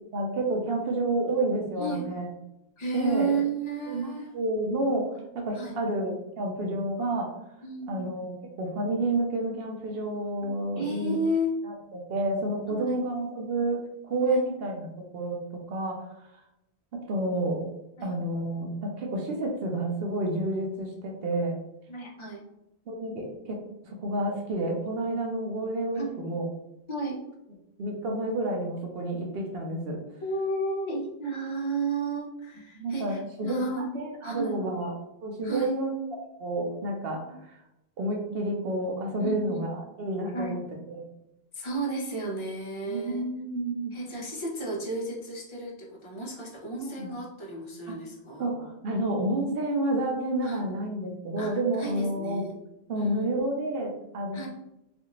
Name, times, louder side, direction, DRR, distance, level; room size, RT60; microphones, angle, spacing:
voice 1, 0.1-2.3 2.9-3.4 3.9-5.1 5.3-7.3 7.9-11.2 11.6-15.4 15.7-16.1 16.9-17.6 18.0-21.6 22.9-23.6 23.8-26.5 27.8-30.0 32.7-34.9 35.2-36.0 36.4-37.6 38.0-40.6 40.9-41.1 42.9-43.9 46.8-47.1 47.9-48.0 48.4-52.4 52.9-54.5, right 1 dB, 70° right, 1 dB, 0.8 m, -30 dB
voice 2, 2.8-4.3 5.5-5.7 7.6-8.2 10.4-11.5 12.7-13.0 14.2-14.4 18.0-18.2 21.9-22.4 26.0-26.2 26.9-27.2 30.2-33.8 34.2-34.6 35.4-35.7 37.3-37.4 39.2-39.6 40.3-40.6 41.5-43.2 43.9-48.5 50.4-50.6 51.4-51.5 51.8-52.6 52.9-53.2 54.3-54.5, right 2 dB, 30° left, -3 dB, 0.6 m, -33 dB
2.5 x 2.5 x 2.9 m, 0.87 s
omnidirectional pair, 1.1 m